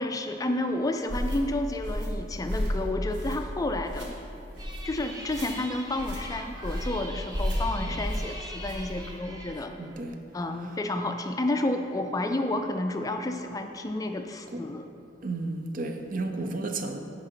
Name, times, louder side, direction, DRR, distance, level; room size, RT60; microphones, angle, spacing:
voice 1, 0.0-4.2 4.8-9.7 10.3-14.8, left 2 dB, 20° left, 6 dB, 0.3 m, -30 dB
sound 1, 1.1-1.4 1.8-2.1 2.5-2.8 3.1-3.5 3.8-4.1 4.5-4.8 5.3-5.5 6.0-6.2 6.6-6.9 7.3-7.6 8.0-8.2 8.6-8.9, equal, 70° right, 1.6 m, -31 dB
sound 2, 4.6-9.6, right 1 dB, 20° right, 0.9 m, -43 dB
voice 2, 9.8-10.1 14.5-14.6 15.2-17.0, right 2 dB, 50° right, 6 dB, 0.6 m, -33 dB
9.7 x 4.8 x 5.6 m, 2.7 s
head